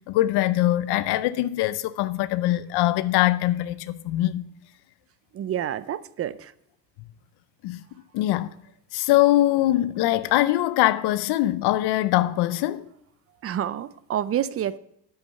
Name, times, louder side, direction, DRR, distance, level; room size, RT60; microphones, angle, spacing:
voice 1, 0.1-4.5 7.6-7.8 8.1-8.5 8.9-12.9, left 15 dB, 75° left, 0.6 m, -22 dB
voice 2, 5.3-6.4 13.4-14.8, right 10 dB, 35° right, 0.5 m, -28 dB
9.5 x 8.0 x 5.7 m
cardioid pair, 120°, 40 cm